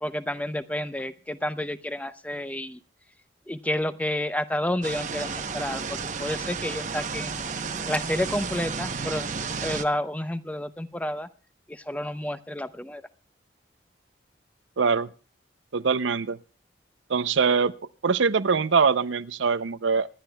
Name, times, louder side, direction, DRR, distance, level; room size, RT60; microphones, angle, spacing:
voice 1, 0.0-2.8 3.5-7.4 7.9-11.3 11.7-13.0, left 1 dB, 10° left, 0.6 m, -30 dB
sound 1, 4.8-9.8, right 5 dB, 40° right, 0.9 m, -32 dB
voice 2, 14.8-15.1 15.7-16.4 17.1-17.7 18.0-20.1, right 5 dB, 85° right, 0.6 m, -23 dB
27.0 x 11.0 x 2.3 m
head